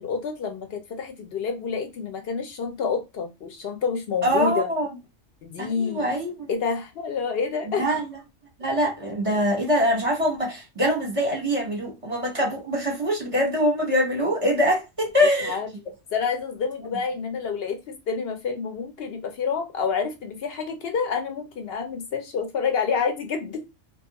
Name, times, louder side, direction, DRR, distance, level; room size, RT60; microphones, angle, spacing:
voice 1, 0.0-4.7 5.4-6.1 6.5-7.8 15.5-15.7 16.1-23.6, left 5 dB, 60° left, 0.7 m, -28 dB
voice 2, 4.2-4.9 5.6-6.5 7.7-8.1 8.6-15.6, equal, 30° right, 0.8 m, -24 dB
2.6 x 2.3 x 2.8 m
omnidirectional pair, 1.3 m